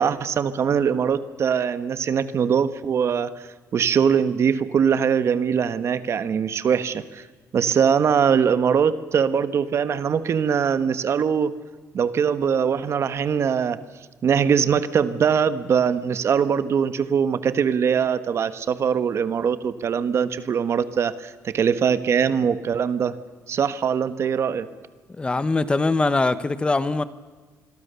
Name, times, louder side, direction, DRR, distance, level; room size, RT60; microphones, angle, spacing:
voice 1, 0.0-7.3 7.5-11.5 11.9-13.8 14.2-23.1 23.5-24.7, right 7 dB, 50° right, 12 dB, 1.3 m, -22 dB
voice 2, 25.2-27.0, left 3 dB, 15° left, 14 dB, 1.0 m, -22 dB
26.5 x 22.0 x 6.9 m, 1.4 s
cardioid pair, 140°, 6 cm